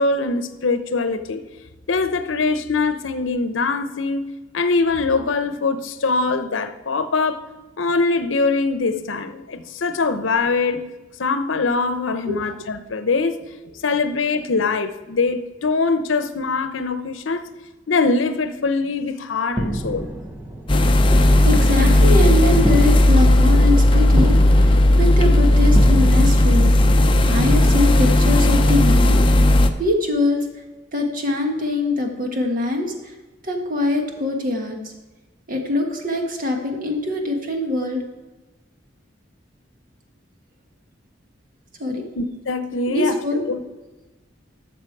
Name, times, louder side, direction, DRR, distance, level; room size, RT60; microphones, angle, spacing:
voice 1, 0.0-1.4 1.9-4.2 4.5-7.5 7.8-10.8 11.2-13.4 13.8-17.5 17.9-20.1 42.1-43.2 43.5-43.6, left 3 dB, 85° left, 0.7 m, -22 dB
sound 1, 19.5-29.0, right 1 dB, 10° right, 0.9 m, -29 dB
sound 2, 20.7-29.7, left 1 dB, 25° left, 0.6 m, -15 dB
voice 2, 21.4-26.7 27.3-29.2 29.8-30.5 30.9-32.9 33.4-34.9 35.5-38.0 41.8-42.0 42.9-43.4, left 2 dB, 45° right, 1.5 m, -23 dB
12.5 x 6.7 x 4.6 m
head